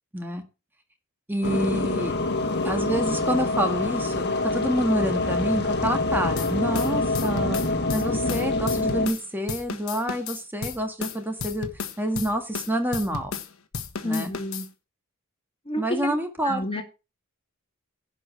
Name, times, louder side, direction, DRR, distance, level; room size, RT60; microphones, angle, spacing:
voice 1, 1.3-2.1 2.6-7.6 7.9-11.7 12.0-13.4 14.0-14.3 15.8-16.8, right 1 dB, 10° right, 5 dB, 1.8 m, -28 dB
sound 1, 1.4-9.1, left 2 dB, 50° left, 1.5 m, -26 dB
sound 2, 6.4-9.2 9.5-13.5 13.7-14.7, left 5 dB, 80° left, 1.4 m, -33 dB
voice 2, 8.1-8.5 14.0-14.7 15.6-16.2 16.4-16.8, left 1 dB, 25° left, 5 dB, 1.6 m, -30 dB
11.0 x 5.3 x 6.4 m, 0.30 s
head